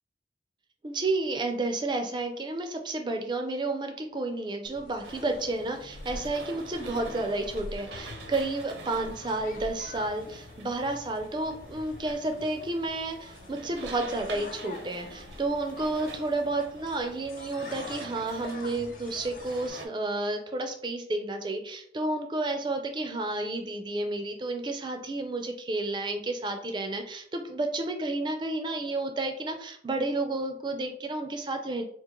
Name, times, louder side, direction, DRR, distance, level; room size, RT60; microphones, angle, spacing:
voice 1, 0.8-31.8, right 2 dB, 25° right, 5 dB, 0.4 m, -31 dB
sound 1, 4.6-19.7, left 2 dB, 45° left, 0.3 m, -46 dB
sound 2, 5.0-19.9, right 2 dB, 75° right, 0.6 m, -46 dB
3.7 x 2.5 x 2.9 m, 0.65 s
head